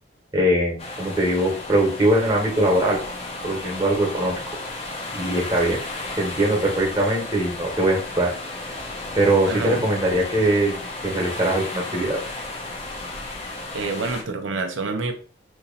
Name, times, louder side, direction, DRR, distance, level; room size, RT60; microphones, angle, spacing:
voice 1, 0.3-3.0 3.4-4.4 5.2-5.8 6.2-8.3 9.1-10.7 11.0-12.2, right 1 dB, 20° right, -2 dB, 1.2 m, -21 dB
sound 1, 0.8-14.2, left 2 dB, 30° left, 0.7 m, -34 dB
voice 2, 9.5-9.8 13.7-15.1, right 3 dB, 85° right, 5 dB, 0.5 m, -27 dB
3.0 x 2.7 x 3.9 m, 0.39 s
head